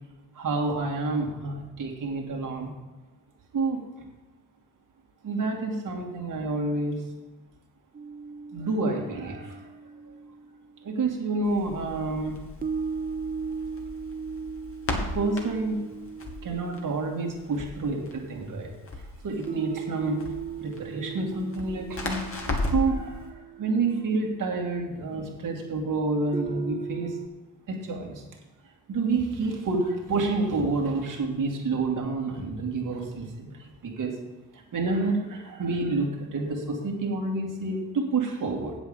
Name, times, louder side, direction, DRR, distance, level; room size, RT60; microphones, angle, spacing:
voice 1, 0.3-2.7 3.5-3.8 5.2-7.0 8.5-9.6 10.8-12.4 14.9-15.9 16.4-18.7 19.2-20.2 20.6-27.1 27.7-28.2 28.9-34.1 34.5-38.8, right 3 dB, 55° right, 0 dB, 2.7 m, -29 dB
sound 1, 7.9-11.2 12.6-18.1 19.5-24.9 26.3-27.3, right 6 dB, 25° right, 0.6 m, -38 dB
Crackle, 11.4-23.0, left 2 dB, 35° left, 2.5 m, -36 dB
8.1 x 7.3 x 7.0 m, 1.1 s
supercardioid pair, 50°, 37 cm